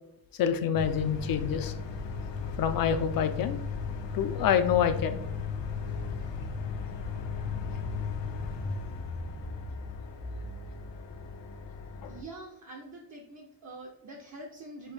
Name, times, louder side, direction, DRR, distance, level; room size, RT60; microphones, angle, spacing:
voice 1, 0.4-1.7 2.6-3.6 4.1-5.2 12.0-12.1, left 8 dB, 50° left, 9 dB, 0.5 m, -27 dB
sound 1, 0.7-12.2, left 5 dB, 75° left, 0.8 m, -36 dB
voice 2, 12.1-14.9, right 2 dB, 40° right, -1 dB, 0.6 m, -45 dB
5.8 x 2.6 x 3.3 m, 0.78 s
cardioid pair, 145°, 44 cm